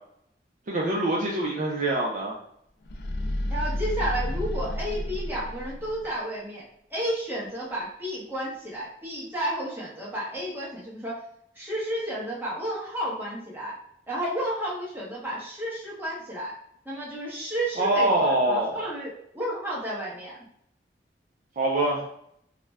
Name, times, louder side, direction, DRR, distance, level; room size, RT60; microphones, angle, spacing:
voice 1, 0.7-2.4 17.8-18.9 21.6-22.1, right 1 dB, 45° right, -2 dB, 0.4 m, -24 dB
sound 1, 2.8-6.1, left 1 dB, 65° left, 0.4 m, -31 dB
voice 2, 3.5-6.6 6.9-11.2 11.6-13.7 14.1-16.5 16.8-20.4, right 1 dB, 10° right, -6 dB, 0.9 m, -32 dB
2.4 x 2.1 x 3.2 m, 0.72 s
head